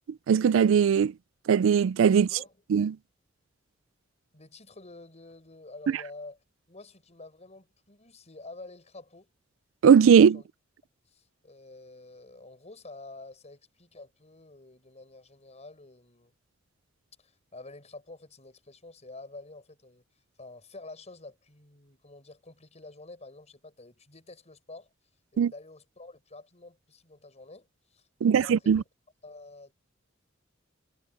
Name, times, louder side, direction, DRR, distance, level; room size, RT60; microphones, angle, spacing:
voice 1, 0.3-1.1 1.5-2.3 2.7-3.0 9.8-10.4 25.4-25.5 28.2-28.8, right 7 dB, 80° right, 0.4 m, -19 dB
voice 2, 2.2-2.6 4.3-6.4 6.7-9.3 10.3-10.5 11.1-16.3 17.2-20.0 20.4-24.9 25.3-28.8 29.2-29.7, left 2 dB, 35° left, 5.9 m, -48 dB
head